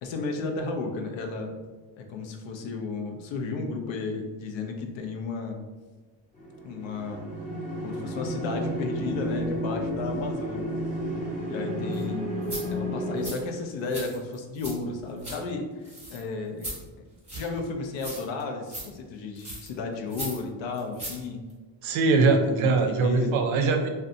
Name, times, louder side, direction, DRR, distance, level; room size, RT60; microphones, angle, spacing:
voice 1, 0.0-1.6 2.0-5.6 6.6-7.3 7.8-10.8 11.5-12.3 12.7-16.7 17.3-21.4 22.1-23.3, left 3 dB, 70° left, 3 dB, 0.6 m, -33 dB
sound 1, 6.4-13.3, equal, 15° left, 0.7 m, -32 dB
sound 2, 11.9-12.0 12.4-12.6 13.2-13.4 13.9-14.7 15.0-15.4 15.8-16.2 16.6-16.8 17.3-17.6 18.0-18.4 18.7-18.9 19.4-19.7 20.1-20.4 20.7-21.2 21.5-21.6, right 1 dB, 15° right, 0.9 m, -37 dB
voice 2, 21.8-23.9, right 4 dB, 85° right, 4 dB, 0.6 m, -22 dB
2.6 x 2.2 x 2.5 m, 1.3 s
cardioid pair, 115°, 47 cm